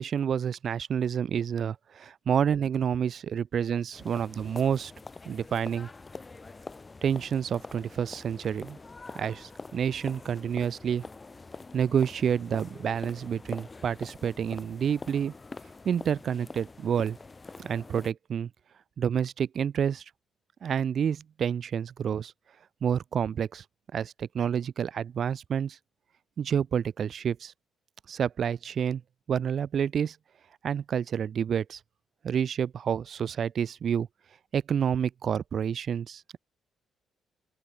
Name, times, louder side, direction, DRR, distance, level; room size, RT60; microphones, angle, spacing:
voice 1, 0.0-4.9 5.3-5.9 7.0-8.8 9.1-11.0 11.7-15.3 15.8-17.2 17.6-18.5 19.0-20.0 20.6-22.3 22.8-23.6 23.9-25.8 26.4-27.5 28.1-29.0 29.3-30.2 30.6-31.8 32.2-34.1 34.5-36.4, right 8 dB, 55° right, 0.4 m, -29 dB
sound 1, 3.9-18.1, left 3 dB, 25° left, 0.5 m, -45 dB
open air
cardioid pair, 90°, 0 cm